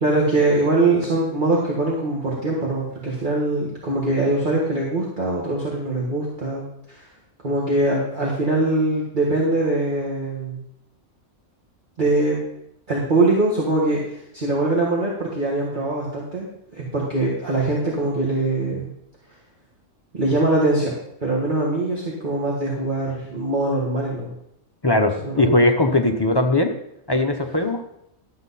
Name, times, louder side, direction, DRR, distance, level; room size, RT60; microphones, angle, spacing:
voice 1, 0.0-7.0 7.4-10.6 12.0-12.4 12.9-18.9 20.1-20.9 21.2-24.3 25.2-25.6, right 2 dB, 40° right, -4 dB, 1.8 m, -22 dB
voice 2, 24.8-26.7 27.1-27.8, left 2 dB, 25° left, 3 dB, 0.7 m, -19 dB
12.0 x 7.9 x 4.1 m, 0.79 s
omnidirectional pair, 1.3 m